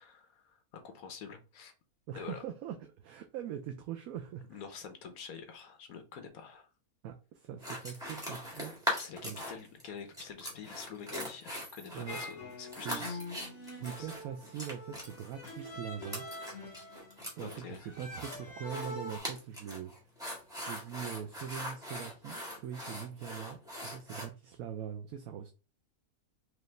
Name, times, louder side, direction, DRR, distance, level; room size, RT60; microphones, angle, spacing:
voice 1, 0.0-1.7 2.1-2.4 4.5-6.7 9.0-13.2 14.0-14.1 17.4-17.9, left 6 dB, 70° left, 1.3 m, -47 dB
voice 2, 2.1-4.6 7.0-9.0 9.2-9.4 11.9-12.2 12.7-13.0 13.7-16.2 17.2-19.9 20.6-25.5, right 9 dB, 75° right, 1.0 m, -42 dB
sound 1, 7.6-9.8 10.1-24.2, equal, 5° right, 1.3 m, -41 dB
sound 2, 12.1-19.2, left 1 dB, 55° left, 1.3 m, -45 dB
4.7 x 2.6 x 3.2 m
omnidirectional pair, 1.6 m